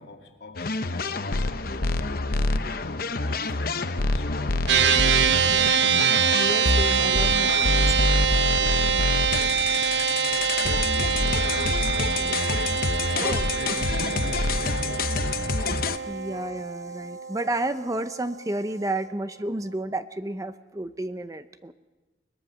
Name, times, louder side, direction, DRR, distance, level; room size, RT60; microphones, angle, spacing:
voice 1, 0.0-1.9 2.3-6.0 9.4-12.3 12.8-14.0 14.5-15.2, left 2 dB, 70° left, 2.3 m, -44 dB
sound 1, 0.6-16.0, left 3 dB, 55° left, 0.8 m, -27 dB
sound 2, 0.8-8.4, left 2 dB, 85° left, 1.7 m, -42 dB
sound 3, 4.7-18.2, right 7 dB, 75° right, 0.8 m, -25 dB
voice 2, 6.3-8.1 12.6-12.8 13.2-13.5 14.3-14.5 16.1-21.7, right 2 dB, 20° right, 0.6 m, -32 dB
22.0 x 21.0 x 6.3 m
head